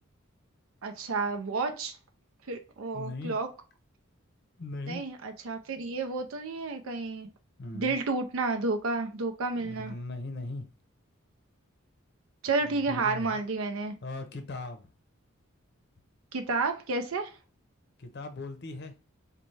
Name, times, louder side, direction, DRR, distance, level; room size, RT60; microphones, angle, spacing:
voice 1, 0.8-2.0 2.5-3.5 4.9-7.3 7.7-9.9 12.4-13.9 16.3-17.3, right 3 dB, 70° right, 0.5 m, -31 dB
voice 2, 2.9-3.4 4.6-5.0 7.6-8.0 9.6-10.7 12.6-13.4 14.0-14.9 18.0-18.9, left 2 dB, 50° left, 0.6 m, -39 dB
4.1 x 2.2 x 3.2 m
head